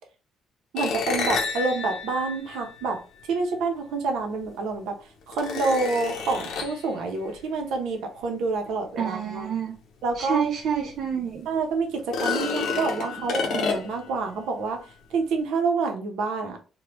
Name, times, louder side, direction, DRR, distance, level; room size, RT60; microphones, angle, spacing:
voice 1, 0.7-3.0 3.3-5.0 5.3-9.5 10.0-10.4 11.5-14.8 15.1-16.6, right 4 dB, 85° right, 3 dB, 0.7 m, -27 dB
sound 1, 0.8-3.2 4.4-4.5 5.3-6.9 10.2-10.3 10.7-10.8 12.0-14.1, left 5 dB, 60° left, 0.6 m, -29 dB
voice 2, 9.0-9.8 10.1-11.5 13.1-13.2, right 7 dB, 45° right, 2 dB, 0.4 m, -28 dB
3.2 x 2.2 x 3.0 m, 0.35 s
cardioid pair, 170°, 0 cm